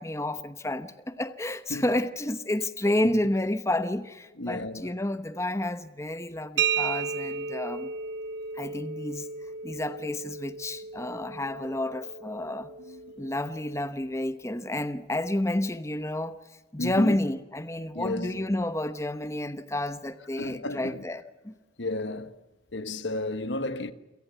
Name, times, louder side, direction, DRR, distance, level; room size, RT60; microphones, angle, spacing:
voice 1, 0.0-7.9 8.5-9.3 9.6-12.7 13.2-16.4 16.7-21.6, left 1 dB, 15° left, 1.0 m, -30 dB
voice 2, 4.4-4.9 12.8-13.2 16.8-17.2 17.9-18.5 20.4-21.0 21.8-22.4 22.7-23.9, left 2 dB, 80° left, 1.4 m, -33 dB
sound 1, 6.6-14.1, right 6 dB, 70° right, 0.7 m, -34 dB
28.5 x 17.5 x 7.0 m
head